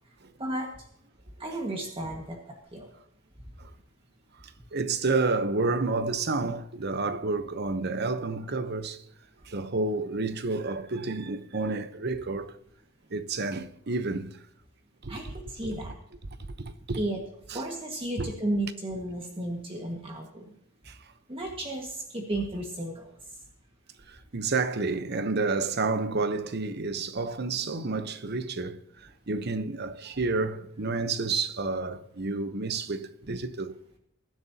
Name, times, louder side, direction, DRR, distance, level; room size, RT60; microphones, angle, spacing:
voice 1, 0.4-0.9 1.4-2.9 15.1-16.0 17.0-17.2 17.5-20.5 21.3-23.1, right 1 dB, 30° right, 1.8 m, -33 dB
voice 2, 4.4-9.0 9.4-12.6 13.1-14.4 15.0-15.3 16.6-17.0 17.5-17.6 18.2-18.3 20.9-21.0 24.1-33.8, right 3 dB, 55° right, 1.0 m, -30 dB
23.0 x 10.5 x 2.9 m
head